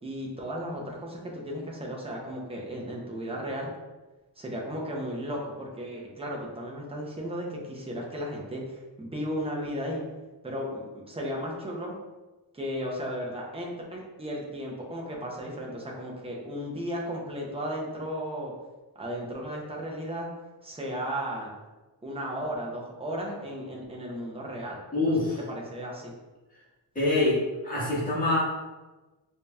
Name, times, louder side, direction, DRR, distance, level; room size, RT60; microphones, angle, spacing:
voice 1, 0.0-3.7 4.4-10.0 10.4-12.0 12.5-18.5 19.0-20.3 20.6-21.5 22.0-26.1, equal, 15° right, -2 dB, 0.5 m, -35 dB
voice 2, 24.9-25.4 26.9-28.4, left 2 dB, 20° left, -9 dB, 1.4 m, -25 dB
4.9 x 2.7 x 2.3 m, 1.2 s
wide cardioid pair, 175°, 45 cm